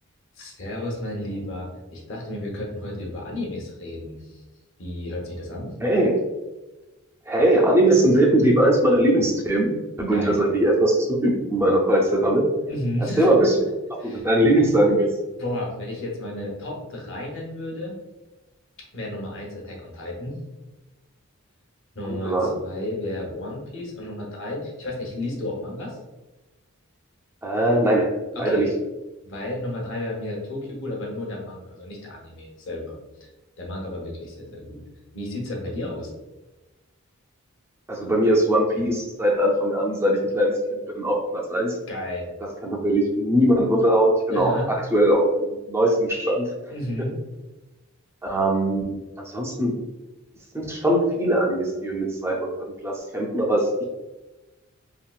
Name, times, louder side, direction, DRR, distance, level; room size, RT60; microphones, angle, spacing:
voice 1, 0.4-4.4 4.8-5.7 10.0-10.4 12.7-13.4 14.0-14.3 15.4-18.0 18.9-20.4 21.9-26.0 28.3-28.6 29.2-33.3 33.6-34.8 35.1-36.1 41.9-42.3 44.3-44.7 46.7-47.2, left 1 dB, 60° left, -2 dB, 0.9 m, -32 dB
voice 2, 5.8-6.2 7.3-12.5 13.2-13.5 13.9-15.1 22.1-22.5 27.4-28.1 28.4-28.7 37.9-41.8 42.6-46.5 48.2-49.8 50.5-52.5 52.8-53.8, right 1 dB, 10° right, -2 dB, 0.4 m, -21 dB
3.6 x 2.3 x 2.3 m, 1.1 s
head